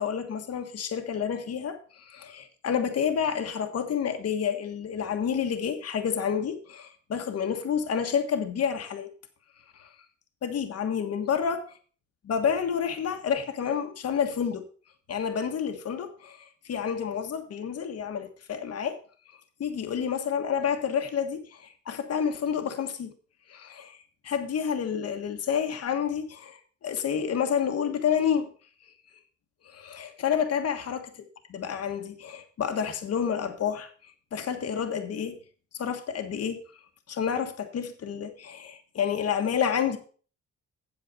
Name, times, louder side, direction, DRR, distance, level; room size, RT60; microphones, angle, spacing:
voice 1, 0.0-9.1 9.7-9.9 10.4-11.6 12.2-14.7 15.1-19.0 19.6-23.1 23.5-24.0 24.2-28.5 29.6-31.0 31.5-35.4 35.8-36.6 37.1-40.0, left 7 dB, 55° left, 1.4 m, -29 dB
8.1 x 7.6 x 5.3 m
cardioid pair, 90°, 30 cm